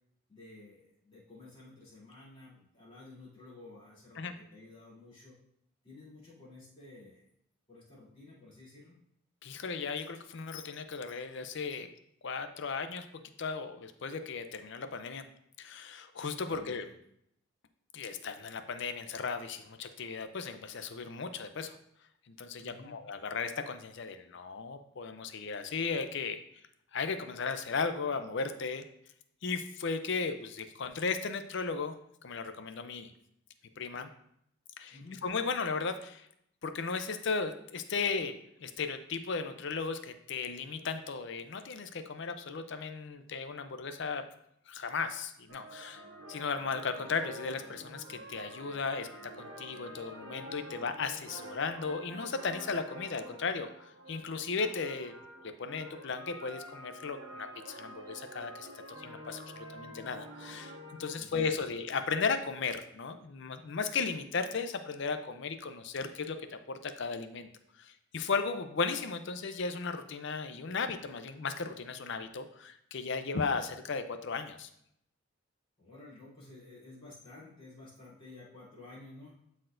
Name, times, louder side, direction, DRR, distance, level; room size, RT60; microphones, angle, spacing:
voice 1, 0.3-5.4 5.8-7.3 7.7-8.9 16.4-16.9 22.6-23.0 34.9-35.2 61.1-61.6 75.8-79.3, left 2 dB, 25° left, -8 dB, 3.0 m, -52 dB
voice 2, 9.4-11.9 12.2-13.0 13.4-15.2 15.6-16.8 17.9-21.8 22.3-26.4 26.9-28.8 29.4-31.9 32.2-33.1 33.8-34.1 34.8-36.3 36.6-38.3 38.6-44.2 44.7-46.0 46.3-49.1 49.4-55.1 55.4-58.7 59.0-67.5 67.8-74.7, left 5 dB, 55° left, 9 dB, 0.5 m, -36 dB
sound 1, 45.5-61.2, right 1 dB, 60° right, 1.3 m, -48 dB
12.0 x 4.3 x 2.6 m, 0.73 s
head